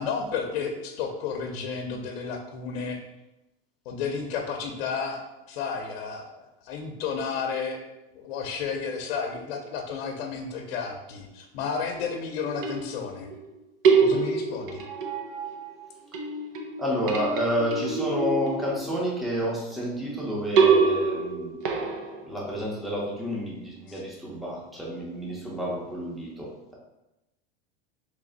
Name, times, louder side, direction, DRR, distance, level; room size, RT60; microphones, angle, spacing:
voice 1, 0.0-3.0 3.9-7.8 8.1-13.3 14.0-14.8 23.9-24.0, left 5 dB, 70° left, 3 dB, 0.7 m, -32 dB
sound 1, 12.5-13.4 13.8-15.8 16.1-19.1 20.6-22.2, right 5 dB, 65° right, 0.7 m, -25 dB
voice 2, 16.8-21.6 22.2-26.8, equal, ahead, -4 dB, 0.6 m, -30 dB
3.3 x 3.1 x 3.8 m, 0.97 s
supercardioid pair, 150°, 30 cm